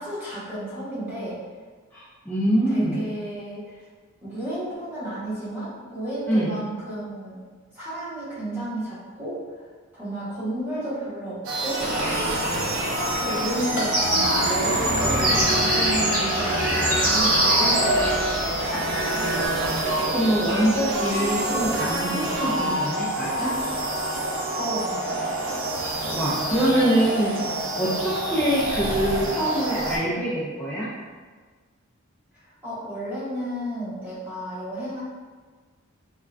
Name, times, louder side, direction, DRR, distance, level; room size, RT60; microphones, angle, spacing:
voice 1, 0.0-1.4 2.7-3.6 4.2-7.4 7.7-9.4 9.9-11.8 12.7-19.1 24.6-25.3 32.6-35.0, right 1 dB, 10° right, -11 dB, 0.9 m, -32 dB
voice 2, 1.9-3.0 6.3-6.5 19.7-23.5 25.8-27.3 27.8-30.9, right 1 dB, 10° left, -10 dB, 0.3 m, -24 dB
sound 1, 11.4-30.0, right 1 dB, 60° right, 0.5 m, -27 dB
sound 2, 11.8-19.5, left 1 dB, 60° left, 0.7 m, -32 dB
sound 3, 11.8-18.7, right 1 dB, 45° right, 1.1 m, -25 dB
3.5 x 2.1 x 2.3 m, 1.5 s
head